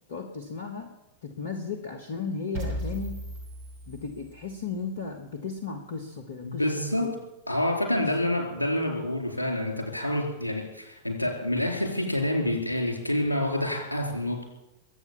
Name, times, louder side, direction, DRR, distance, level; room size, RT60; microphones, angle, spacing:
voice 1, 0.1-0.9 1.2-3.2 3.9-6.7 7.0-7.1 8.0-8.1, left 5 dB, 60° left, 6 dB, 1.5 m, -35 dB
sound 1, 2.5-4.6, right 1 dB, 55° right, 3.8 m, -36 dB
voice 2, 6.4-7.1 7.5-14.4, left 1 dB, 85° left, 2 dB, 4.1 m, -27 dB
22.0 x 8.5 x 7.2 m, 0.95 s
figure-of-eight pair, 90°, 0 cm